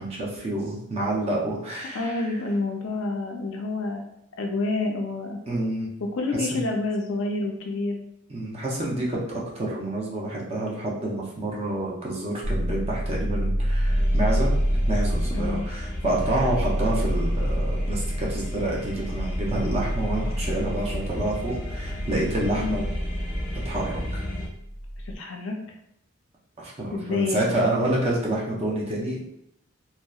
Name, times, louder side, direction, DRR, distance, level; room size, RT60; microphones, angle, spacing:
voice 1, 0.0-2.4 5.5-5.9 6.4-6.6 8.3-14.6 14.9-22.8 23.6-24.2 26.6-29.3, right 1 dB, 30° right, -3 dB, 0.5 m, -28 dB
voice 2, 1.9-4.0 4.4-5.4 6.1-8.0 15.3-15.6 22.5-22.8 25.1-25.6 26.9-27.6, left 3 dB, 60° left, 2 dB, 0.4 m, -28 dB
sound 1, 12.4-25.2, equal, 70° right, 1.4 m, -28 dB
sound 2, 13.9-24.5, left 1 dB, 5° right, 1.0 m, -34 dB
2.7 x 2.0 x 2.3 m, 0.77 s
head